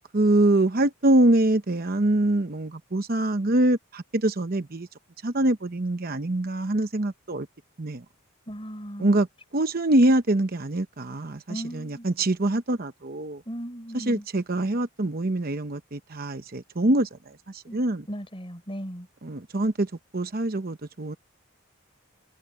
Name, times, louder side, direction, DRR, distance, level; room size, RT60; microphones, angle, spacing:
voice 1, 0.1-4.9 5.2-7.5 7.8-8.0 9.0-9.3 9.5-13.4 13.9-18.0 19.2-21.2, right 1 dB, 45° right, 0.9 m, -24 dB
voice 2, 8.5-9.1 11.5-12.1 13.5-14.3 17.7-17.8 18.1-19.1, equal, 25° left, 5.9 m, -37 dB
head